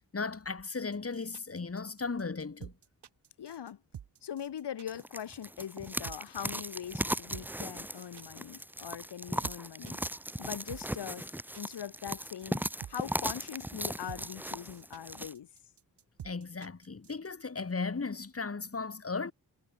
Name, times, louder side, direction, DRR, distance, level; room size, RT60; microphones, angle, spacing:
voice 1, 0.0-2.7 16.2-19.3, left 4 dB, 35° left, 3.0 m, -36 dB
sound 1, 0.6-17.3, right 9 dB, 85° right, 1.5 m, -49 dB
voice 2, 3.4-3.8 4.2-10.0 10.4-11.3 11.6-15.5, left 9 dB, 90° left, 1.5 m, -41 dB
sound 2, 4.9-15.3, right 1 dB, 5° right, 1.0 m, -38 dB
wide cardioid pair, 105°, 39 cm